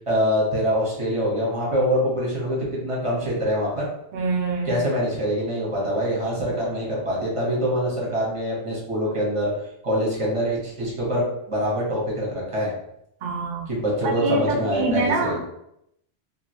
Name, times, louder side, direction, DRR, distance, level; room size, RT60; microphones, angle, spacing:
voice 1, 0.1-3.9 4.6-9.5 9.8-12.7 13.7-15.4, equal, 30° right, -4 dB, 1.1 m, -24 dB
voice 2, 4.1-4.7 13.2-13.7 14.2-15.3, right 3 dB, 60° right, 1 dB, 0.8 m, -25 dB
2.9 x 2.6 x 2.7 m, 0.77 s
omnidirectional pair, 1.0 m